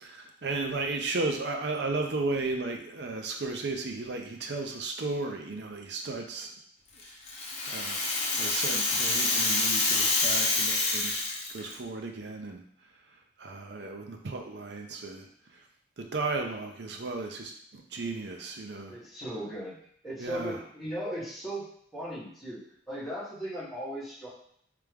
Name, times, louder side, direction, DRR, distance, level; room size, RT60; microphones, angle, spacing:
voice 1, 0.0-6.5 7.6-8.0 8.4-11.1 11.5-12.6 13.4-15.3 16.0-19.0 20.2-20.6, right 3 dB, 65° right, 3 dB, 0.6 m, -34 dB
Rattle (instrument), 7.0-11.7, left 3 dB, 35° left, 0.7 m, -27 dB
voice 2, 18.9-19.8 20.0-24.3, equal, ahead, -12 dB, 1.8 m, -37 dB
3.4 x 3.4 x 3.5 m, 0.65 s
head